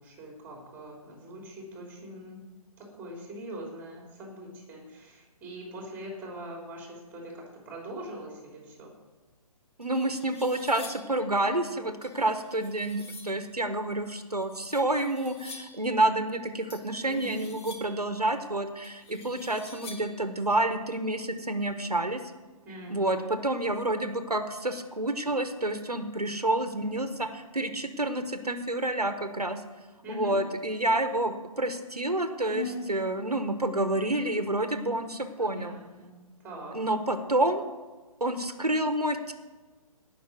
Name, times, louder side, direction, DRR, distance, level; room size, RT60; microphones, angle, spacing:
voice 1, 0.0-2.4 2.8-8.9 17.0-17.5 22.6-23.4 30.0-30.4 32.5-33.2 35.4-36.8, equal, 10° right, -1 dB, 3.1 m, -41 dB
sound 1, 9.3-9.4 9.8-11.2 12.0-13.4 14.4-15.9 16.7-18.1 18.8-20.3, left 3 dB, 40° left, 1.9 m, -48 dB
voice 2, 9.8-22.2 22.9-29.6 30.1-35.8 36.7-37.6 38.2-39.3, right 1 dB, 90° right, 8 dB, 1.4 m, -29 dB
17.5 x 6.1 x 6.2 m, 1.3 s
figure-of-eight pair, 140°, 19 cm